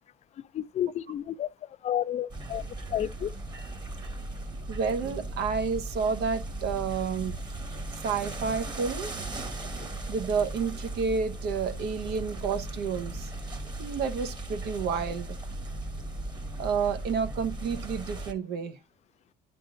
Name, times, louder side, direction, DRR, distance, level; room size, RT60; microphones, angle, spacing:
voice 1, 0.5-2.6 2.9-3.3, left 11 dB, 40° left, 0.4 m, -31 dB
sound 1, 2.3-18.3, right 2 dB, 25° right, 1.3 m, -37 dB
voice 2, 4.7-7.4 8.0-9.1 10.1-13.3 13.8-15.4 16.6-18.8, right 5 dB, 75° right, 1.0 m, -30 dB
10.5 x 3.7 x 3.8 m
cardioid pair, 110°, 17 cm